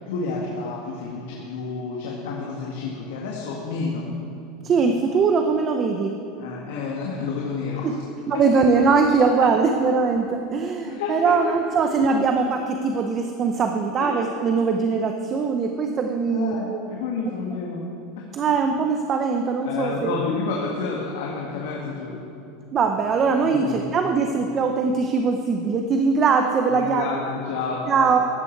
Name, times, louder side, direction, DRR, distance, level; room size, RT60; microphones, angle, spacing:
voice 1, 0.1-4.1 6.4-8.0 8.3-8.4 10.9-11.3 14.0-14.2 16.2-17.8 18.2-18.3 19.6-22.2 23.4-23.9 26.7-28.2, left 4 dB, 75° left, -3 dB, 1.9 m, -30 dB
voice 2, 4.6-6.1 7.8-7.9 8.3-16.9 18.3-20.2 22.7-27.1 27.9-28.2, right 5 dB, 25° right, 5 dB, 0.7 m, -21 dB
14.5 x 11.5 x 4.7 m, 2.6 s
supercardioid pair, 165°, 0 cm